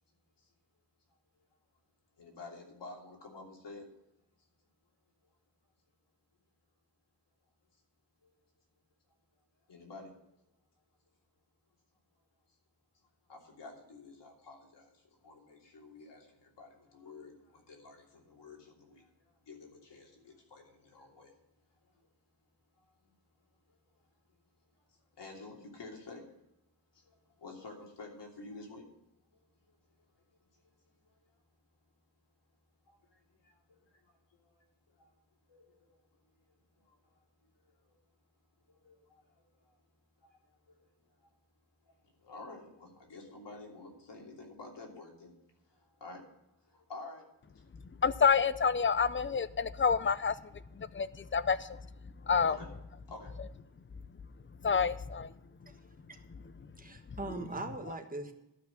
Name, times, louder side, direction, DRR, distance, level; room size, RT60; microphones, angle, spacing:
voice 1, 2.2-3.9 8.2-8.3 9.7-10.1 13.3-21.3 21.8-22.1 22.8-22.9 23.7-23.9 24.8-26.4 26.9-28.9 29.3-29.8 30.1-30.2 30.5-31.3 32.9-35.1 35.5-36.3 36.8-37.2 37.5-38.0 38.7-39.8 40.2-40.8 41.2-41.3 41.8-45.3 45.7-46.2 46.6-47.8 50.9-51.0 52.5-52.7 53.1-53.3, left 3 dB, 80° left, 0 dB, 3.1 m, -51 dB
voice 2, 48.0-50.4 50.7-51.8 52.3-52.6 54.6-55.3, left 6 dB, 30° left, 15 dB, 0.5 m, -28 dB
voice 3, 56.8-58.3, right 2 dB, 20° right, 5 dB, 1.5 m, -40 dB
12.0 x 5.9 x 8.6 m, 0.86 s
wide cardioid pair, 125°, 42 cm